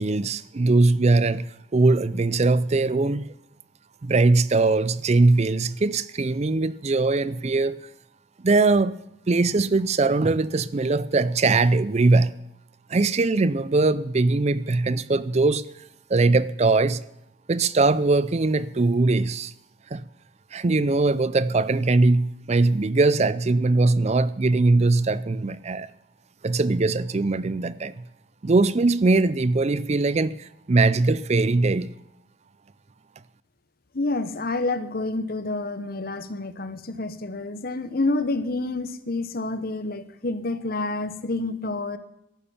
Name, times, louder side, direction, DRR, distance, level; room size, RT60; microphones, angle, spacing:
voice 1, 0.0-1.5 1.7-3.3 4.0-7.9 8.4-9.0 9.3-12.3 12.9-15.7 16.1-17.0 17.5-19.5 19.9-20.0 20.5-25.9 26.4-27.9 28.4-31.9, right 3 dB, 35° right, 0.5 m, -21 dB
voice 2, 33.9-42.0, left 2 dB, 50° left, 1.1 m, -28 dB
14.0 x 11.5 x 7.1 m
head